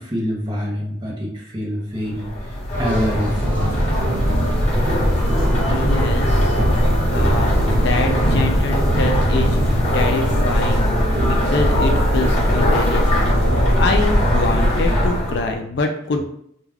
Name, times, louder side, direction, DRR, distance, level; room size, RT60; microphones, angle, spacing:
voice 1, 0.0-3.8, equal, 20° right, -3 dB, 0.6 m, -26 dB
sound 1, 2.1-15.6, equal, 35° left, 0.9 m, -19 dB
sound 2, 2.7-9.8, right 1 dB, 10° left, 1.0 m, -25 dB
sound 3, 3.4-14.0, right 1 dB, 90° right, 0.6 m, -28 dB
voice 2, 5.7-6.6 6.9-10.9 11.2-16.2, left 3 dB, 55° left, 4 dB, 0.3 m, -25 dB
2.3 x 2.2 x 3.3 m, 0.70 s
head